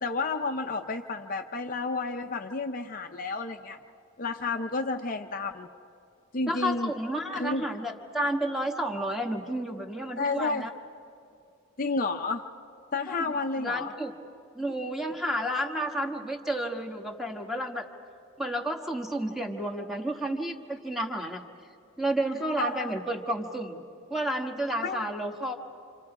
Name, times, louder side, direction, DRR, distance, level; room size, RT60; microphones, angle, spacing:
voice 1, 0.0-3.8 4.2-5.7 6.3-6.9 7.4-7.7 10.2-10.7 11.8-12.4 12.9-13.9 22.6-22.9 24.8-25.0, left 3 dB, 40° left, 5 dB, 0.6 m, -31 dB
voice 2, 6.5-10.7 13.1-14.1 14.5-17.9 18.4-21.4 22.0-23.8 24.1-25.5, right 1 dB, ahead, 2 dB, 1.3 m, -31 dB
28.0 x 27.0 x 4.9 m, 2.5 s
head